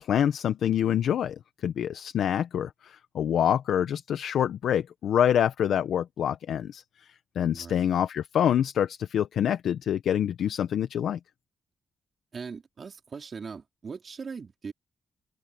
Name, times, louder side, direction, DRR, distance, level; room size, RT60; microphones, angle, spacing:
voice 1, 0.0-11.2, left 9 dB, 80° left, 1.0 m, -26 dB
voice 2, 7.5-7.9 12.3-14.7, right 5 dB, 50° right, 4.2 m, -40 dB
cardioid pair, 60°, 0 cm